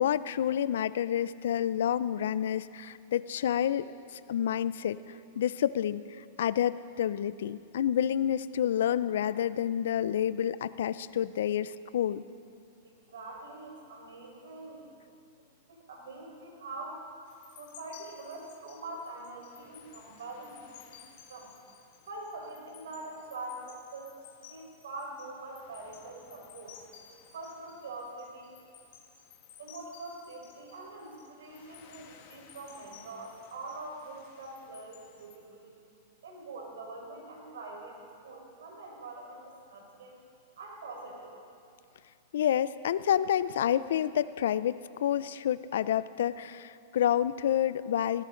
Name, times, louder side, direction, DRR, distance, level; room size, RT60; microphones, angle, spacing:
voice 1, 0.0-5.0 5.4-12.2 42.3-44.7 45.0-48.2, left 10 dB, 80° left, 16 dB, 0.5 m, -29 dB
voice 2, 12.8-14.9 15.7-17.0 17.6-21.0 21.3-21.5 22.0-26.8 27.3-28.5 29.6-35.7 36.2-37.9 38.2-40.2 40.6-41.3, right 2 dB, 90° right, 0 dB, 4.7 m, -44 dB
sound 1, 17.3-35.4, left 9 dB, 55° left, 1.7 m, -56 dB
20.0 x 17.0 x 3.9 m, 2.5 s
hypercardioid pair, 130°, 0 cm